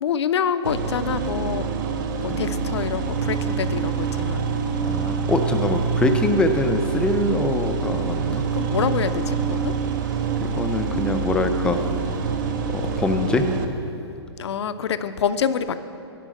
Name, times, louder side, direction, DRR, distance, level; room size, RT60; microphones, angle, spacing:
voice 1, 0.0-1.7 2.2-4.5 8.5-9.8 14.4-15.8, left 7 dB, 70° left, 11 dB, 0.5 m, -26 dB
sound 1, 0.6-13.6, right 5 dB, 45° right, 0.6 m, -26 dB
voice 2, 4.8-8.4 10.4-11.8 12.7-13.5, left 2 dB, 5° left, 6 dB, 0.4 m, -24 dB
10.0 x 4.6 x 7.6 m, 2.7 s
hypercardioid pair, 140°, 14 cm